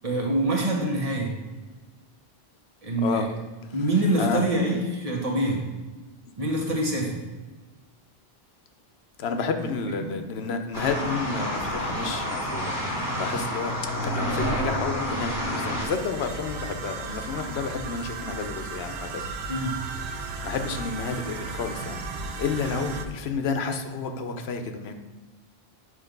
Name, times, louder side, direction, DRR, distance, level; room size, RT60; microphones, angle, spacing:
voice 1, 0.0-1.3 2.8-3.3 3.7-5.6 6.4-7.1 9.9-10.1 19.5-19.7, right 1 dB, 35° right, -1 dB, 1.3 m, -25 dB
voice 2, 9.2-12.7 13.2-19.3 20.4-22.0 22.4-24.9, left 5 dB, 90° left, 7 dB, 1.0 m, -30 dB
sound 1, 10.7-15.9, equal, 15° left, 1.6 m, -29 dB
sound 2, 15.8-23.1, right 4 dB, 85° right, 0.9 m, -35 dB
8.0 x 3.2 x 5.2 m, 1.2 s
omnidirectional pair, 1.0 m